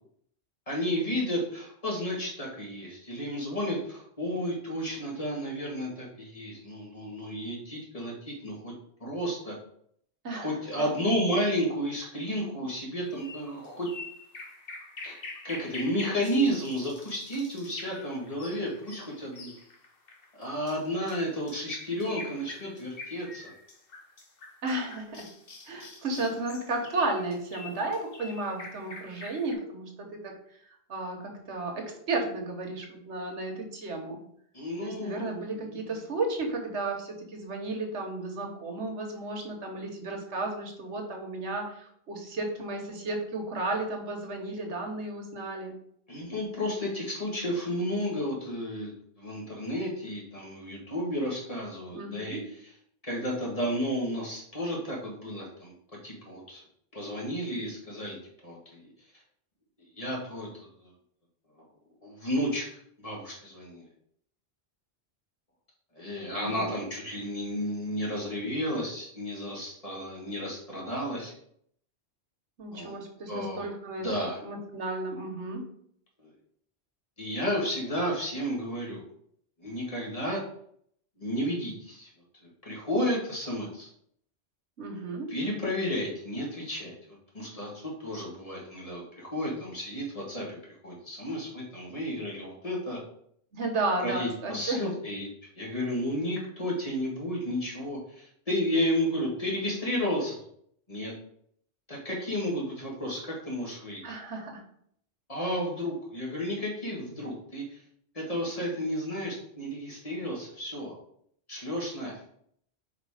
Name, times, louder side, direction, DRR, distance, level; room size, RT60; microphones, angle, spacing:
voice 1, 0.7-8.7 9.0-9.5 10.3-13.9 15.0-15.2 15.4-19.5 20.4-23.5 34.5-35.8 46.1-48.9 49.2-52.4 53.1-55.7 56.0-56.6 56.9-58.2 58.4-58.9 59.8-60.9 62.0-62.7 63.0-63.9 65.9-71.3 72.7-73.0 73.3-73.7 74.0-74.4 76.2-76.3 77.2-79.1 79.6-80.4 81.2-82.1 82.4-83.9 85.3-87.0 87.3-90.6 90.8-93.0 94.0-95.3 95.6-100.4 100.9-101.1 101.9-104.0 105.3-107.8 108.1-110.9 111.5-112.2, equal, 35° left, -3 dB, 1.9 m, -32 dB
sound 1, 13.2-29.5, left 3 dB, 55° left, 1.3 m, -45 dB
voice 2, 24.6-25.3 25.7-30.3 30.9-34.2 34.8-45.7 51.9-52.5 66.3-66.7 72.6-74.1 74.4-75.7 84.8-85.3 93.5-94.8 104.0-104.6, right 2 dB, 85° right, 2 dB, 1.5 m, -33 dB
4.8 x 4.5 x 4.9 m, 0.67 s
omnidirectional pair, 1.1 m